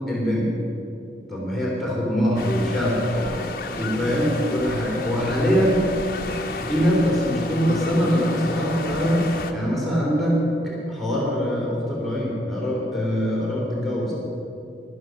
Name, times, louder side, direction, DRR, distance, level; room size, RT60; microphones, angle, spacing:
voice 1, 0.1-0.5 1.3-3.3 3.7-5.8 6.7-14.1, equal, ahead, -6 dB, 3.0 m, -23 dB
sound 1, 2.4-9.5, left 3 dB, 50° left, 0.9 m, -32 dB
11.5 x 11.0 x 6.3 m, 2.7 s
head